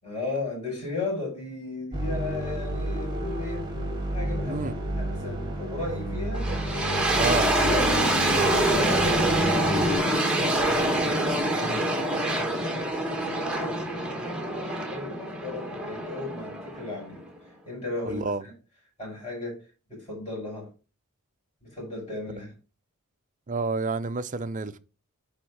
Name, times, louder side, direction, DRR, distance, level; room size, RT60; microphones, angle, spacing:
voice 1, 0.0-3.7 4.1-6.5 7.0-10.9 11.4-12.5 13.2-18.5 19.0-20.7 21.6-22.5, left 2 dB, 20° left, 4.8 m, -36 dB
sound 1, 1.9-10.0, right 1 dB, 20° right, 1.5 m, -30 dB
voice 2, 4.4-4.8 7.2-7.5 11.6-11.8 18.1-18.4 23.5-24.8, right 3 dB, 35° right, 0.5 m, -29 dB
sound 2, 6.3-17.3, right 1 dB, 5° right, 1.3 m, -26 dB
9.6 x 3.6 x 4.7 m
head